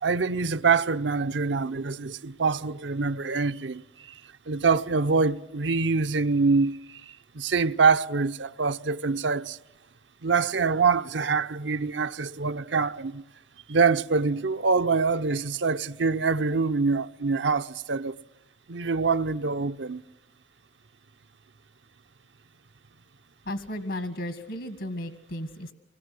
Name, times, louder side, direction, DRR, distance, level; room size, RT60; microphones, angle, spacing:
voice 1, 0.0-3.8 4.5-7.0 7.3-9.6 10.2-13.2 13.7-18.2 18.7-20.0, right 4 dB, 80° right, 0.8 m, -25 dB
voice 2, 23.4-25.7, left 1 dB, 80° left, 1.8 m, -34 dB
26.5 x 21.0 x 7.7 m
head